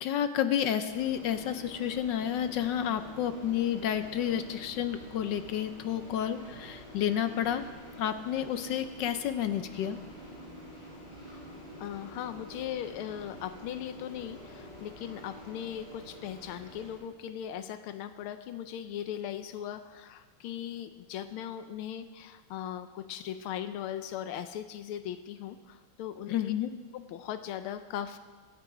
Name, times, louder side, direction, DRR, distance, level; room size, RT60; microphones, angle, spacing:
voice 1, 0.0-7.7 8.0-10.0 26.3-26.7, left 10 dB, 70° left, 10 dB, 1.2 m, -30 dB
sound 1, 0.9-16.9, equal, 50° right, 6.8 m, -48 dB
voice 2, 11.8-26.5 26.9-28.2, left 10 dB, 90° left, 10 dB, 1.6 m, -39 dB
23.5 x 8.5 x 4.9 m, 1.4 s
omnidirectional pair, 2.3 m